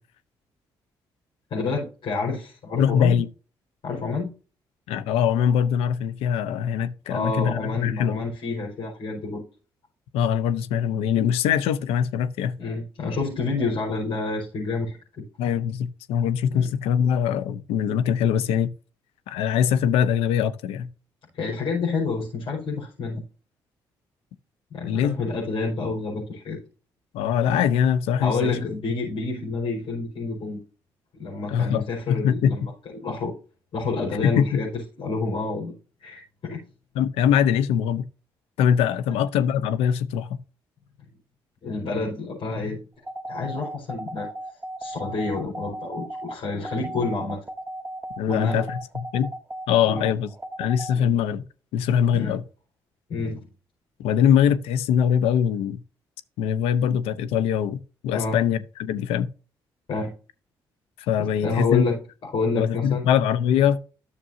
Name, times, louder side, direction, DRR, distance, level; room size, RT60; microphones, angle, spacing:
voice 1, 1.5-3.2 3.8-4.3 7.1-9.4 12.6-14.9 16.5-16.7 21.3-23.2 24.7-26.6 28.2-30.6 31.1-33.3 33.7-35.7 36.0-36.6 39.1-39.2 41.6-42.8 43.3-44.3 44.8-47.4 48.3-48.6 49.9-50.1 50.9-51.1 52.1-52.3 53.1-53.5 58.1-58.4 59.9-60.1 61.2-63.1, left 3 dB, 65° left, 4.9 m, -28 dB
voice 2, 2.8-3.3 4.9-8.2 10.1-12.5 15.4-18.7 19.3-20.9 24.8-25.2 27.1-28.6 31.5-32.5 34.2-34.6 36.9-38.0 38.6-40.4 48.2-49.3 49.7-50.3 50.6-51.4 51.7-52.4 54.0-55.8 56.4-59.3 61.1-61.9 62.5-63.8, left 8 dB, 85° left, 0.7 m, -22 dB
sound 1, 43.1-50.9, right 1 dB, 20° right, 1.1 m, -35 dB
13.0 x 6.8 x 2.7 m
supercardioid pair, 60°, 10 cm